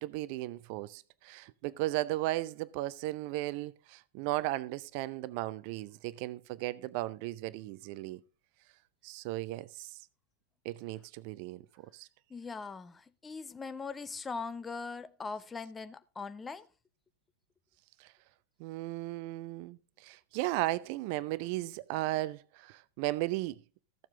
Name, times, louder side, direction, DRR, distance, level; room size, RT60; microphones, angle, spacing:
voice 1, 0.0-8.2 9.0-10.0 10.6-11.7 11.9-12.1 18.0-18.1 18.6-23.6, right 17 dB, 45° right, 0.5 m, -36 dB
voice 2, 12.3-16.7, left 4 dB, 15° left, 0.6 m, -41 dB
14.5 x 7.3 x 3.6 m
figure-of-eight pair, 90°, 0 cm